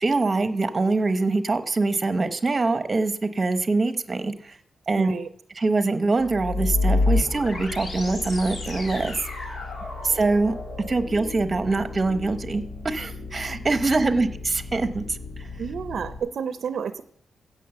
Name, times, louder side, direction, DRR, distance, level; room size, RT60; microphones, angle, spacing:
voice 1, 0.0-4.6 4.9-5.1 5.6-9.1 10.0-10.5 10.9-15.5, right 3 dB, 25° right, 10 dB, 0.9 m, -24 dB
voice 2, 4.9-5.3 14.1-14.2 15.6-17.0, right 6 dB, 65° right, 11 dB, 0.6 m, -30 dB
sound 1, 6.2-16.2, left 3 dB, 65° left, 2.7 m, -30 dB
16.0 x 6.3 x 6.7 m, 0.66 s
wide cardioid pair, 140°, 0 cm